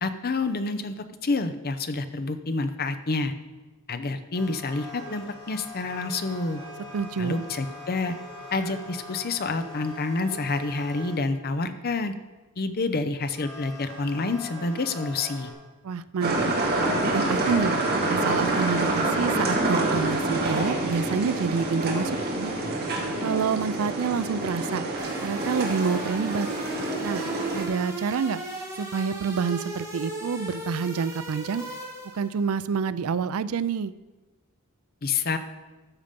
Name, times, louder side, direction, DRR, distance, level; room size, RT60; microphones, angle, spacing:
voice 1, 0.0-3.3 3.9-6.6 7.2-8.2 8.5-12.1 12.6-15.5 35.0-35.4, left 3 dB, 45° left, 10 dB, 0.7 m, -28 dB
sound 1, 4.3-11.2 13.1-15.5, left 1 dB, 25° left, 4.3 m, -42 dB
voice 2, 6.9-7.4 15.8-16.5 17.0-17.7 18.1-22.5 23.2-24.9 25.2-26.5 27.0-27.2 27.5-28.4 28.8-31.6 32.1-33.9, right 6 dB, 70° right, 16 dB, 0.4 m, -28 dB
sound 2, 16.2-27.6, right 2 dB, 45° right, 1.8 m, -27 dB
sound 3, 25.0-32.4, right 1 dB, 15° right, 2.3 m, -36 dB
13.0 x 6.8 x 5.2 m, 1.2 s
head